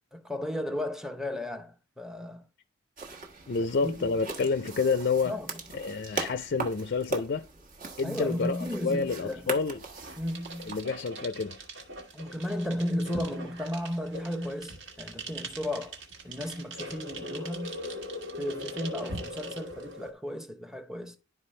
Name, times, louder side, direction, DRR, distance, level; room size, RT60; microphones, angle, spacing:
voice 1, 0.1-2.4 3.6-4.2 5.2-5.6 8.0-9.6 10.2-10.8 12.1-16.0 16.2-17.8 18.4-21.2, left 1 dB, 5° right, 0.8 m, -34 dB
sound 1, 3.0-10.8, right 4 dB, 40° right, 1.3 m, -39 dB
voice 2, 3.5-5.4 5.7-7.5 8.0-9.8 10.6-11.6, left 4 dB, 50° left, 0.4 m, -29 dB
sound 2, 9.8-20.1, right 1 dB, 65° right, 1.8 m, -41 dB
11.5 x 4.7 x 3.2 m
head